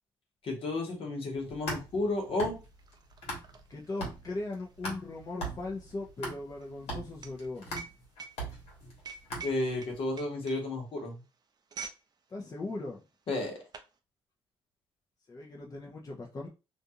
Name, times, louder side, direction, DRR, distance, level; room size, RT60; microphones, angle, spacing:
voice 1, 0.4-2.6 9.4-11.2 13.3-13.6, left 2 dB, 65° left, 1.1 m, -32 dB
sound 1, 1.4-3.7 4.0-9.9, right 1 dB, 90° left, 1.2 m, -40 dB
sound 2, 2.1-12.1 12.4-12.6 13.3-13.9, right 5 dB, 45° right, 0.5 m, -47 dB
voice 2, 3.7-7.8 12.3-13.0 15.3-16.5, left 2 dB, 35° left, 0.6 m, -39 dB
2.5 x 2.4 x 2.7 m
cardioid pair, 75°, 10 cm